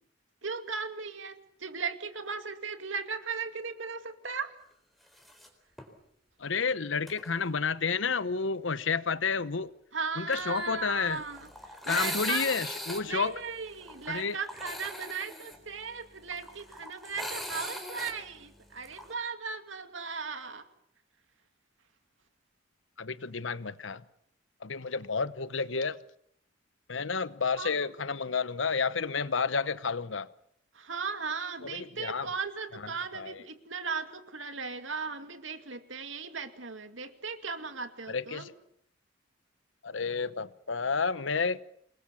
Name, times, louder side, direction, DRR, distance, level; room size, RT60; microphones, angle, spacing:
voice 1, 0.4-4.5 9.9-11.5 11.9-12.5 13.1-20.6 27.5-27.9 30.7-38.5, right 5 dB, 80° right, 2.4 m, -37 dB
sound 1, 5.2-5.5 5.8-5.9 7.1-7.3 10.3-19.1, equal, ahead, 4.0 m, -40 dB
voice 2, 6.4-9.7 10.2-11.2 11.9-13.3 14.1-14.4 23.0-24.0 24.6-26.0 26.9-30.3 31.6-32.3 33.1-33.4 38.1-38.5 39.8-41.6, left 5 dB, 75° left, 1.0 m, -30 dB
27.5 x 21.0 x 7.1 m
head